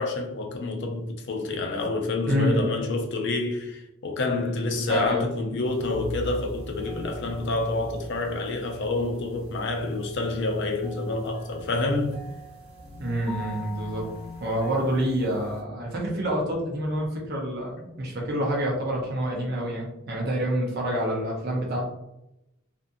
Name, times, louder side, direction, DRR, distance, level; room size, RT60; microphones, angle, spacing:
voice 1, 0.0-12.2, left 2 dB, 50° left, 0.4 m, -28 dB
voice 2, 2.3-2.6 4.9-5.3 13.0-14.0 14.4-21.9, equal, 45° right, 0.7 m, -27 dB
sound 1, 5.6-15.6, left 1 dB, 90° right, 1.1 m, -41 dB
2.5 x 2.5 x 2.5 m
head